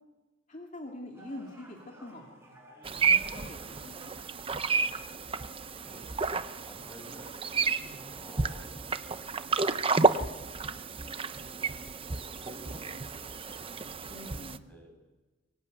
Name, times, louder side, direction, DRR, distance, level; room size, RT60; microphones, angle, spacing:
voice 1, 0.5-2.6 2.9-4.1 7.7-8.1 14.1-14.7, left 1 dB, 40° left, 0 dB, 2.7 m, -45 dB
sound 1, 1.1-9.9, right 1 dB, 15° right, 6.4 m, -57 dB
sound 2, 2.8-14.6, right 4 dB, 30° right, 0.8 m, -31 dB
voice 2, 5.8-6.3 6.6-7.4 8.0-8.7 9.7-14.9, equal, 10° left, 1 dB, 7.9 m, -53 dB
24.0 x 23.0 x 9.2 m, 1.2 s
head